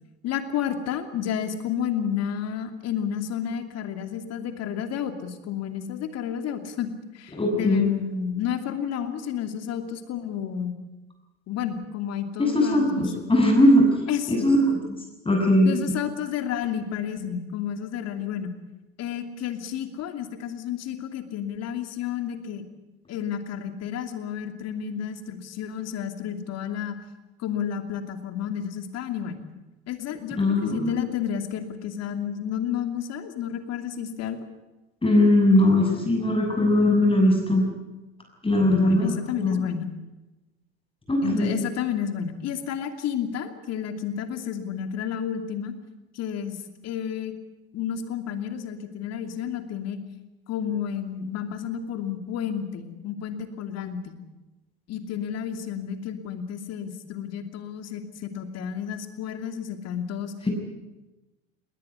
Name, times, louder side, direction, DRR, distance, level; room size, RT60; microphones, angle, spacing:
voice 1, 0.2-10.8 11.5-13.2 14.1-14.5 15.6-18.6 19.0-22.6 23.1-27.0 27.4-29.4 29.9-34.4 38.7-39.9 41.2-45.7 46.1-47.4 47.7-50.0 50.5-54.2 54.9-60.3, left 8 dB, 50° left, 8 dB, 2.8 m, -31 dB
voice 2, 7.4-7.9 12.4-13.9 14.3-15.0 15.2-15.8 30.3-31.0 35.0-37.6 38.4-39.1 39.4-39.7 41.1-41.5, left 1 dB, 15° left, 1 dB, 6.7 m, -20 dB
19.5 x 19.5 x 9.6 m, 1.1 s
hypercardioid pair, 70°, 32 cm